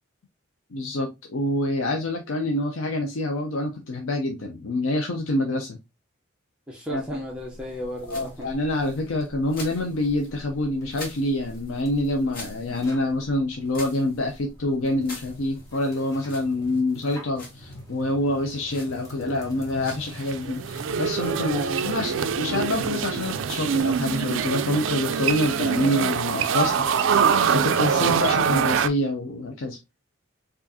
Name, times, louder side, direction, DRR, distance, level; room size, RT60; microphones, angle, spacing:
voice 1, 0.7-5.8 6.9-7.0 8.1-29.8, left 1 dB, 75° left, 0.5 m, -26 dB
voice 2, 6.7-8.5 21.5-22.1, equal, 5° right, 0.6 m, -34 dB
sound 1, 6.9-24.2, left 1 dB, 45° left, 1.2 m, -46 dB
sound 2, 7.5-23.8, left 1 dB, 15° left, 1.0 m, -45 dB
sound 3, 19.9-28.9, right 7 dB, 65° right, 0.3 m, -24 dB
4.7 x 2.5 x 2.6 m
head